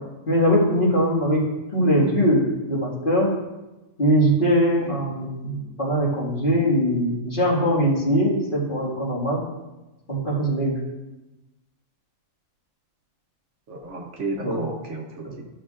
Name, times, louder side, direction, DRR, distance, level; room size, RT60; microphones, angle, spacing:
voice 1, 0.3-1.4 1.7-3.3 4.0-9.4 10.1-10.8 14.4-14.6 15.2-15.4, equal, 35° left, -5 dB, 2.1 m, -21 dB
voice 2, 13.7-15.4, right 3 dB, 60° right, 1 dB, 1.1 m, -33 dB
13.0 x 6.6 x 2.5 m, 1.1 s
omnidirectional pair, 1.5 m